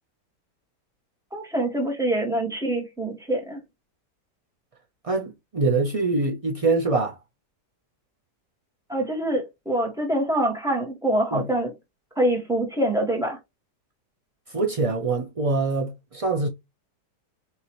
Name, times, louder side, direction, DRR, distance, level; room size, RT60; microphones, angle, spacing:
voice 1, 1.3-3.6 8.9-11.7 12.2-13.4, right 1 dB, ahead, 1.3 m, -25 dB
voice 2, 5.0-7.2 11.3-11.5 14.5-16.5, right 3 dB, 65° right, 0.3 m, -24 dB
4.7 x 3.4 x 3.0 m
omnidirectional pair, 1.9 m